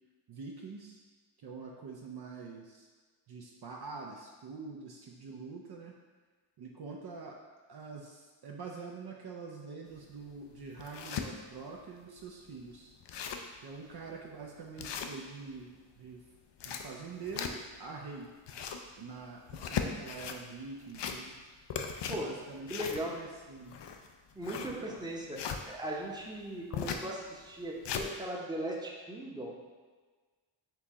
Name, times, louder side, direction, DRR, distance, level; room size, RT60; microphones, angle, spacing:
voice 1, 0.3-1.0 1.4-2.9 3.3-5.9 6.6-7.4 7.7-12.9 13.6-16.2 16.6-18.3 19.0-21.3 22.1-23.8 24.6-25.0, right 4 dB, 50° right, -1 dB, 0.6 m, -45 dB
sound 1, 9.9-10.0 10.5-11.3 11.8-11.9 12.2-12.3 12.7-12.8 13.0-13.5 14.0-14.1 14.8-15.6 16.3-17.8 18.3-18.9 19.4-20.4 20.8-21.4 21.7-25.6 26.7-27.1 27.5-28.1, left 7 dB, 60° left, 0.5 m, -38 dB
voice 2, 22.7-23.3 24.3-29.5, right 1 dB, 10° right, -2 dB, 0.8 m, -38 dB
4.5 x 2.8 x 3.5 m, 1.4 s
cardioid pair, 55°, 50 cm